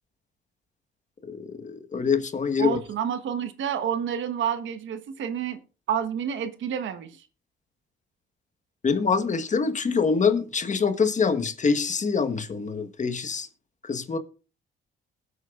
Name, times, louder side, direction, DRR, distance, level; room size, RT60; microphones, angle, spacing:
voice 1, 1.2-2.8 8.8-13.5 13.8-14.2, left 5 dB, 40° left, 1.4 m, -25 dB
voice 2, 2.6-5.6 5.9-7.2, right 8 dB, 75° right, 1.3 m, -29 dB
21.0 x 8.3 x 2.5 m
cardioid pair, 90°, 20 cm